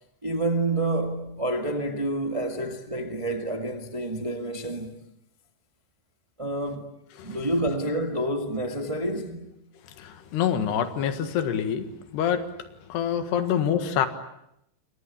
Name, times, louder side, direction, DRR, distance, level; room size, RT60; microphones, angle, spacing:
voice 1, 0.2-4.9 6.4-6.9 7.2-9.5 13.4-13.5, right 1 dB, 30° right, 0.5 m, -28 dB
voice 2, 10.0-11.9 12.1-14.1, left 8 dB, 90° left, 3.8 m, -26 dB
29.5 x 23.5 x 8.6 m
omnidirectional pair, 4.6 m